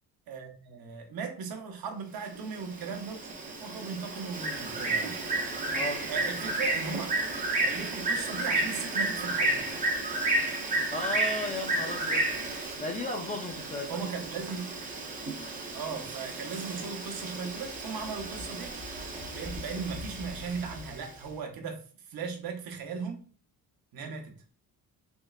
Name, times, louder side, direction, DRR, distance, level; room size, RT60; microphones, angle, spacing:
voice 1, 0.3-3.3 3.6-5.2 6.1-9.7 13.9-14.8 15.7-18.7 19.3-21.8 22.1-23.2 23.9-24.4, right 5 dB, 70° right, 0.8 m, -37 dB
Bird, 2.4-21.1, right 2 dB, 20° right, 0.6 m, -32 dB
voice 2, 5.7-6.0 10.9-12.3 12.8-14.0 24.0-24.1, left 1 dB, 20° left, 0.3 m, -35 dB
3.5 x 3.1 x 2.3 m
wide cardioid pair, 180°, 37 cm